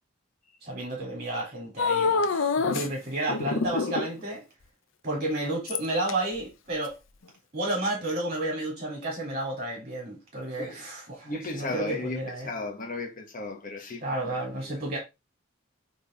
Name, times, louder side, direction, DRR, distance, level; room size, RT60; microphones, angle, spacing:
voice 1, 0.6-4.4 5.0-7.0 7.5-12.5 14.0-15.0, right 1 dB, 35° right, 3.3 m, -31 dB
sound 1, 1.8-2.9 3.3-4.2 5.7-6.1 6.9-7.0, left 4 dB, 70° left, 0.7 m, -26 dB
voice 2, 11.2-14.8, left 2 dB, 40° left, 1.6 m, -36 dB
8.4 x 3.7 x 3.7 m
head